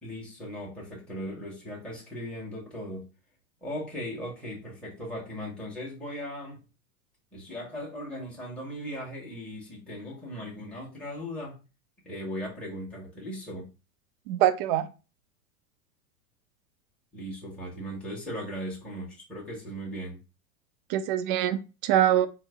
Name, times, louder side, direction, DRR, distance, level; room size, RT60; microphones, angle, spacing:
voice 1, 0.0-3.1 3.6-6.6 7.3-11.6 12.0-13.7 17.1-20.2, equal, ahead, 1.3 m, -38 dB
voice 2, 14.3-14.9 20.9-22.3, right 12 dB, 45° right, 0.4 m, -24 dB
3.8 x 2.0 x 3.4 m
hypercardioid pair, 100°, 41 cm